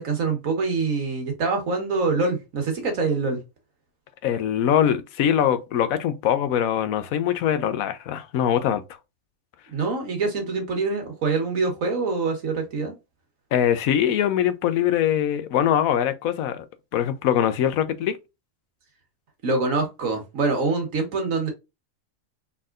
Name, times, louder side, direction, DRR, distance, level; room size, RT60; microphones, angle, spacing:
voice 1, 0.0-3.4 9.7-12.9 19.4-21.5, right 3 dB, 75° right, 1.8 m, -25 dB
voice 2, 4.2-8.8 13.5-16.7 16.9-18.2, left 10 dB, 90° left, 1.1 m, -22 dB
4.1 x 3.6 x 2.4 m
omnidirectional pair, 1.4 m